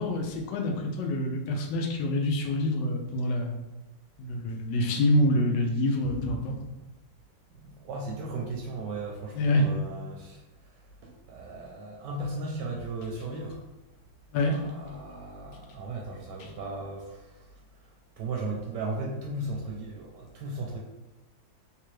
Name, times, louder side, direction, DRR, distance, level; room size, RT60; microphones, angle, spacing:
voice 1, 0.0-3.6 4.2-6.6 9.4-9.7 14.3-14.6, left 1 dB, 75° left, 2 dB, 1.2 m, -26 dB
voice 2, 7.5-13.6 14.4-20.8, right 2 dB, 75° right, -1 dB, 1.1 m, -36 dB
3.4 x 2.9 x 3.1 m, 1.1 s
omnidirectional pair, 2.0 m